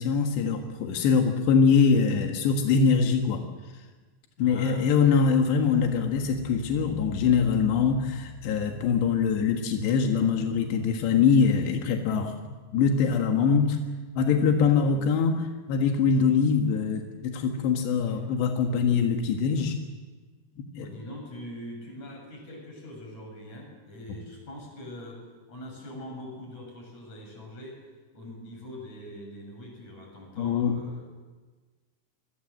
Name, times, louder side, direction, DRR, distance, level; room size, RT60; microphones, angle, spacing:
voice 1, 0.0-3.4 4.4-12.4 12.7-13.8 14.2-19.8 20.8-20.9 30.4-30.8, left 6 dB, 90° left, 3 dB, 3.9 m, -23 dB
voice 2, 4.4-5.1 18.0-18.2 20.8-25.2 25.5-27.8 28.1-31.1, equal, 40° left, 1 dB, 8.7 m, -43 dB
sound 1, 4.5-14.7, left 4 dB, 75° left, 3.2 m, -42 dB
27.0 x 22.5 x 7.7 m, 1.3 s
omnidirectional pair, 4.8 m